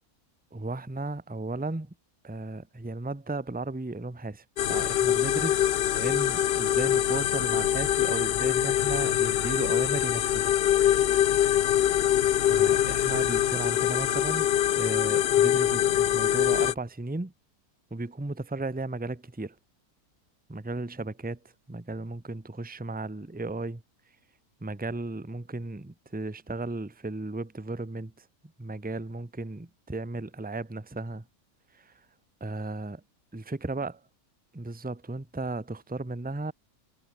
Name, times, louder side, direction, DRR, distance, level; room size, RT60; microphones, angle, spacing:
voice 1, 0.5-1.9 2.2-10.6 12.4-17.3 17.9-19.5 20.5-21.4 21.7-23.8 24.6-28.3 28.6-31.2 31.7-31.9 32.4-33.0 33.3-33.9 34.5-36.5, right 2 dB, 5° right, 1.0 m, -35 dB
sound 1, 4.6-16.7, left 11 dB, 65° left, 0.6 m, -24 dB
omnidirectional pair, 1.6 m